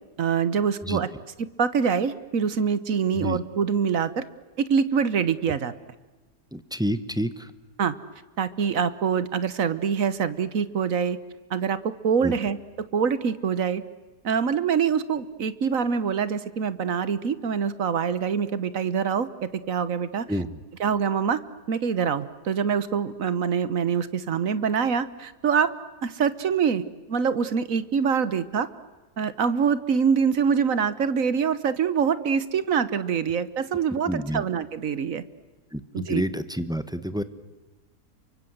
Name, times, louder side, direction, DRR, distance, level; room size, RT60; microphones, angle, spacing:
voice 1, 0.2-1.1 1.4-4.2 4.6-5.7 7.8-7.9 8.4-11.2 11.5-13.8 14.2-20.2 20.8-21.4 21.7-25.7 26.0-26.8 27.1-28.7 29.2-35.2 35.9-36.2, right 6 dB, 60° right, 15 dB, 1.4 m, -25 dB
voice 2, 6.5-7.5 12.2-12.3 20.3-20.6 34.1-34.4 35.7-37.2, equal, 5° right, 12 dB, 0.8 m, -29 dB
29.0 x 24.0 x 8.0 m, 1.2 s
omnidirectional pair, 1.7 m